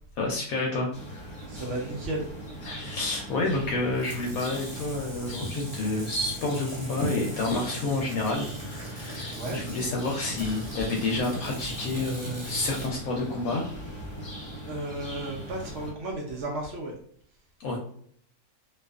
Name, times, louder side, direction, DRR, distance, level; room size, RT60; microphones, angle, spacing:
voice 1, 0.2-1.4 2.6-13.7 17.6-17.8, left 2 dB, 75° left, 0 dB, 1.0 m, -29 dB
sound 1, 0.9-15.9, equal, 30° left, 0.5 m, -40 dB
voice 2, 1.5-2.3 9.3-9.6 12.4-12.5 14.7-16.9, right 2 dB, 65° right, -1 dB, 0.8 m, -34 dB
sound 2, 3.9-12.9, equal, 10° right, 1.0 m, -41 dB
2.6 x 2.3 x 2.3 m, 0.62 s
omnidirectional pair, 1.6 m